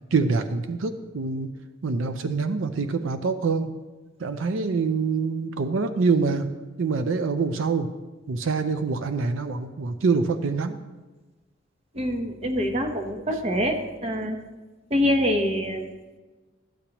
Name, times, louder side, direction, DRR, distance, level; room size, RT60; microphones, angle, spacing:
voice 1, 0.1-1.5 1.8-3.7 4.2-6.5 6.8-7.9 8.3-10.8, right 4 dB, 85° right, 9 dB, 0.5 m, -25 dB
voice 2, 11.9-14.4 14.9-15.8, equal, 30° right, 4 dB, 0.9 m, -25 dB
13.0 x 8.3 x 2.9 m, 1.2 s
head